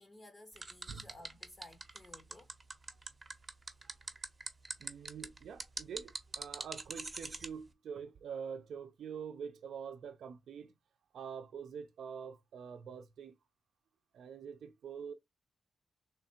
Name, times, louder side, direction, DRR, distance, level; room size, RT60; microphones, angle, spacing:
voice 1, 0.0-2.5, left 1 dB, 25° left, 0.6 m, -56 dB
sound 1, 0.6-7.5, right 3 dB, 20° right, 0.7 m, -42 dB
voice 2, 4.8-10.7 11.1-13.4 14.1-15.1, right 7 dB, 85° right, 0.5 m, -45 dB
3.3 x 3.2 x 4.3 m
wide cardioid pair, 170°, 0 cm